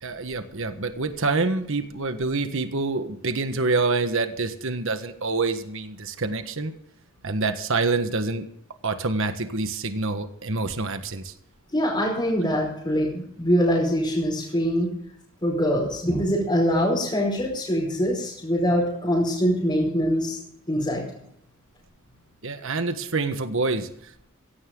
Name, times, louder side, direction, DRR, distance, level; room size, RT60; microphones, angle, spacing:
voice 1, 0.0-6.7 7.2-8.5 8.8-11.3 22.4-24.3, right 3 dB, 60° right, 8 dB, 1.4 m, -26 dB
voice 2, 11.7-14.9 15.4-20.4 20.7-21.0, equal, 20° left, -6 dB, 5.1 m, -23 dB
17.0 x 15.5 x 3.9 m, 0.72 s
head